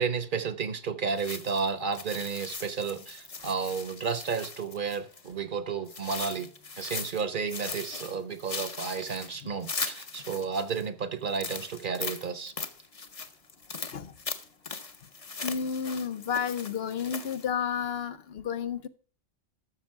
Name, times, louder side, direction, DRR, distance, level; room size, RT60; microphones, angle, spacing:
voice 1, 0.0-6.5 6.8-12.5, right 5 dB, 50° right, 1.0 m, -32 dB
sound 1, 1.2-5.3 5.9-7.2 7.5-10.8 11.3-17.5, left 4 dB, 35° left, 0.9 m, -39 dB
voice 2, 15.4-18.9, left 7 dB, 65° left, 1.0 m, -31 dB
12.5 x 7.0 x 4.6 m
omnidirectional pair, 1.1 m